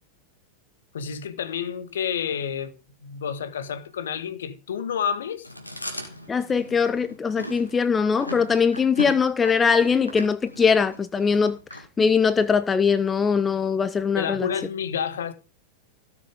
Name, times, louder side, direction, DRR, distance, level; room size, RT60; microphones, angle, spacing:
voice 1, 0.9-5.5 14.2-15.3, left 8 dB, 65° left, 1.6 m, -29 dB
Chewing mastication, 5.4-12.5, equal, 85° left, 2.6 m, -38 dB
voice 2, 6.3-14.5, left 6 dB, 15° left, 0.6 m, -21 dB
17.0 x 6.9 x 3.7 m
figure-of-eight pair, 90°, 0 cm